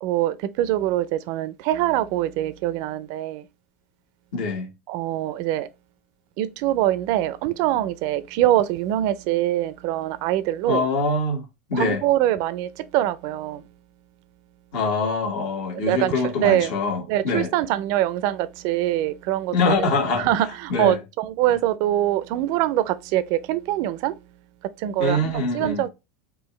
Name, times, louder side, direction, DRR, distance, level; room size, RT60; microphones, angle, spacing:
voice 1, 0.0-3.4 4.9-5.7 6.4-10.8 11.7-13.6 15.9-16.1 16.4-16.7 17.1-19.5 20.2-24.1 24.8-25.9, right 13 dB, 60° right, 0.5 m, -23 dB
voice 2, 4.3-4.7 10.7-12.0 14.7-17.5 19.5-21.0 25.0-25.9, left 3 dB, 60° left, 1.5 m, -24 dB
4.6 x 2.5 x 3.1 m
hypercardioid pair, 105°, 7 cm